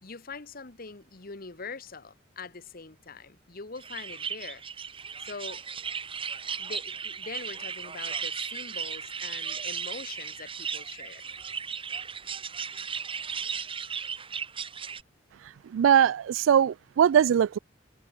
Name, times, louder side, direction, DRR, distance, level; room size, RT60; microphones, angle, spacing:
voice 1, 0.0-4.6 5.2-5.6 6.6-11.2, left 4 dB, 50° left, 1.4 m, -43 dB
sound 1, 3.8-15.0, right 6 dB, 30° right, 1.6 m, -36 dB
voice 2, 15.7-17.6, right 8 dB, 85° right, 0.3 m, -21 dB
head